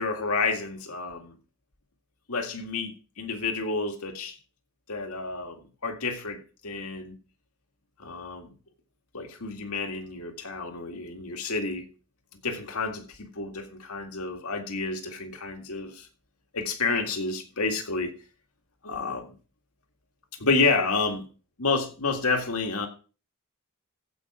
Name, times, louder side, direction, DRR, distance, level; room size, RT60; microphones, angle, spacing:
voice 1, 0.0-1.4 2.3-4.4 4.9-7.2 8.0-8.5 9.1-11.9 12.4-16.1 16.5-18.1 18.8-19.3 20.4-21.2 21.6-22.9, left 3 dB, 85° left, 2.0 m, -29 dB
15.5 x 5.4 x 4.9 m
head